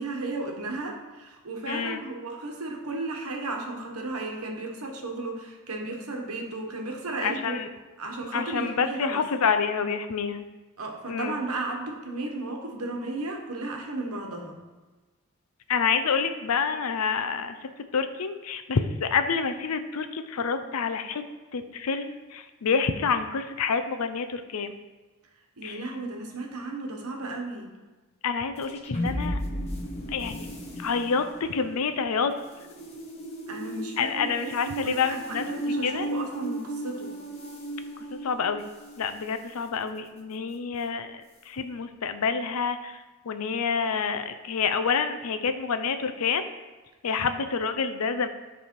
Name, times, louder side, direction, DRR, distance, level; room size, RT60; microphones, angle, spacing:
voice 1, 0.0-7.6 8.0-9.2 10.8-14.5 25.6-27.7 33.5-37.1 47.1-47.2, right 2 dB, 85° right, 1 dB, 1.1 m, -34 dB
voice 2, 1.7-2.0 7.2-7.7 8.3-10.5 11.1-11.4 15.7-17.6 17.9-21.2 21.5-24.8 25.6-25.8 28.2-29.4 30.1-30.5 30.8-32.3 34.0-35.5 35.8-36.1 38.1-38.6 39.0-43.0 43.2-46.4 47.0-48.3, left 5 dB, 80° left, 9 dB, 0.5 m, -28 dB
sound 1, 28.6-39.1, right 1 dB, 30° left, 1.0 m, -35 dB
9.8 x 3.4 x 4.4 m, 1.3 s
head